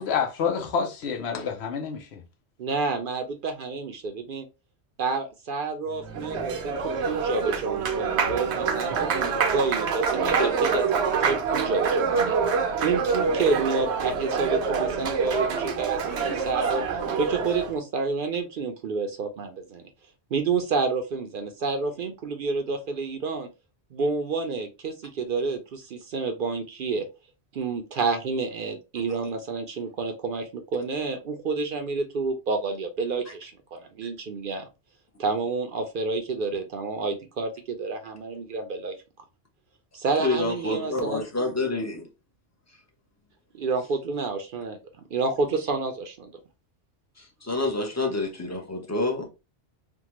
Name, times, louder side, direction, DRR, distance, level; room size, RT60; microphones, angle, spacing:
voice 1, 0.0-2.2, left 6 dB, 75° left, 1.0 m, -28 dB
voice 2, 2.6-4.5 5.0-12.3 12.8-16.8 17.1-19.9 20.3-23.5 23.9-27.0 27.5-34.7 35.2-38.9 39.9-41.3 43.5-44.8 45.1-46.3, right 4 dB, 60° right, 0.6 m, -29 dB
Applause, 5.9-17.8, right 5 dB, 85° right, 0.9 m, -26 dB
voice 3, 40.2-42.1 47.2-49.3, left 2 dB, 20° left, 0.6 m, -28 dB
3.5 x 2.2 x 2.9 m
omnidirectional pair, 1.1 m